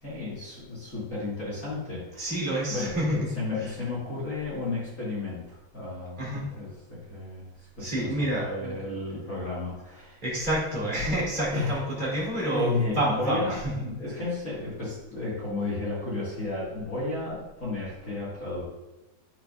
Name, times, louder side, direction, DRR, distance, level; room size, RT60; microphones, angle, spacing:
voice 1, 0.0-2.4 2.7-8.1 8.4-10.2 11.5-12.1 12.5-18.6, left 2 dB, 60° left, -7 dB, 0.8 m, -33 dB
voice 2, 2.2-3.3 3.6-3.7 6.2-6.5 7.8-8.8 10.2-13.7, right 1 dB, 20° right, -6 dB, 1.3 m, -28 dB
10.5 x 5.7 x 2.4 m, 1.1 s
omnidirectional pair, 4.6 m